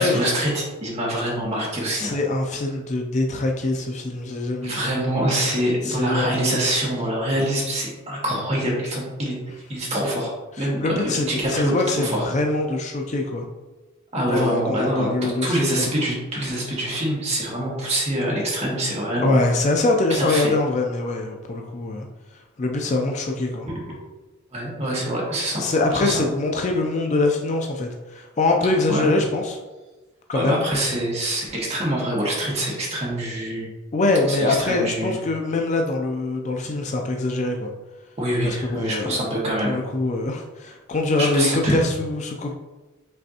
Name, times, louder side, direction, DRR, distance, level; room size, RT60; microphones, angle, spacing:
voice 1, 0.0-2.2 4.6-9.3 9.7-12.2 14.1-19.4 20.1-20.5 23.7-23.8 24.5-25.6 26.0-26.1 28.9-29.1 30.3-33.7 34.3-35.2 38.2-39.8 41.2-41.8, right 1 dB, 30° right, -4 dB, 1.2 m, -25 dB
voice 2, 1.9-4.8 5.8-6.3 10.6-13.4 14.2-15.9 19.2-22.1 22.6-23.7 25.6-29.6 30.3-30.6 33.9-37.7 38.4-39.3 39.6-42.5, left 2 dB, 35° left, 2 dB, 0.3 m, -23 dB
5.3 x 3.3 x 2.8 m, 1.2 s
head